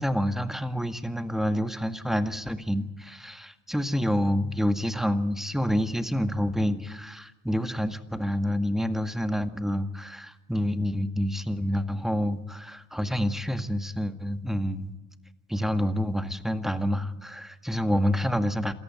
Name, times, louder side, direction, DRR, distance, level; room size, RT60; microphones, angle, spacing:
voice 1, 0.0-14.9 15.5-18.7, equal, ahead, 9 dB, 1.9 m, -28 dB
28.0 x 14.0 x 9.3 m, 1.1 s
hypercardioid pair, 65°, 37 cm